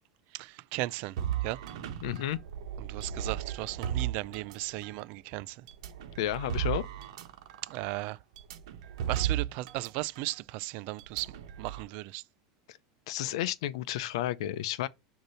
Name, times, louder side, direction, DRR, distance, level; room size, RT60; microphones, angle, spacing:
voice 1, 0.3-1.2 1.4-1.6 2.8-5.6 7.7-8.2 9.1-11.3 11.6-12.2, right 19 dB, 55° right, 0.3 m, -36 dB
sound 1, 1.2-5.0 5.7-9.9 10.2-10.3 11.0-11.8, right 10 dB, 75° right, 1.1 m, -35 dB
voice 2, 2.0-2.4 6.2-6.9 13.1-14.9, left 13 dB, 75° left, 0.6 m, -32 dB
6.6 x 2.9 x 5.6 m
supercardioid pair, 135°, 3 cm